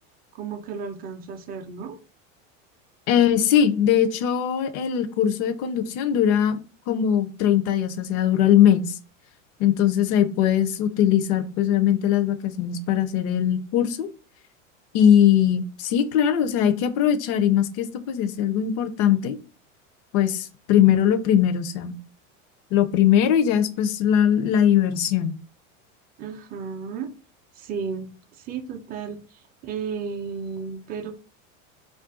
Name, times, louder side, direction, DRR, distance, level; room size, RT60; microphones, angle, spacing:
voice 1, 0.3-2.0 26.2-27.1 27.6-28.1 28.4-31.1, right 6 dB, 25° right, 0.4 m, -33 dB
voice 2, 3.1-6.6 6.9-8.9 9.6-14.1 14.9-19.4 20.1-22.0 22.7-25.4, left 9 dB, 50° left, 0.5 m, -20 dB
2.5 x 2.2 x 3.6 m
hypercardioid pair, 100°, 40 cm